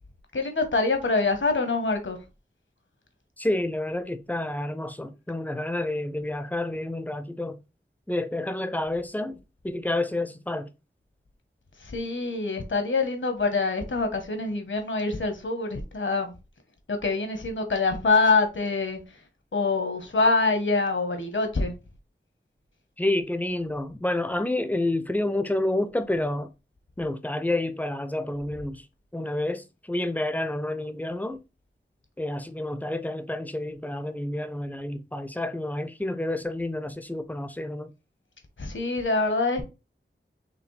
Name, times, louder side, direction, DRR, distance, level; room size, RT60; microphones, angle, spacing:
voice 1, 0.3-2.2 11.8-16.3 16.9-19.2 19.5-21.7 38.6-39.6, left 3 dB, 75° left, 1.0 m, -25 dB
voice 2, 3.4-7.6 8.1-9.4 9.6-10.7 23.0-26.5 27.0-28.9 29.1-31.4 32.2-37.9, left 1 dB, 10° left, 0.5 m, -29 dB
5.0 x 3.1 x 3.2 m
wide cardioid pair, 50°, 20 cm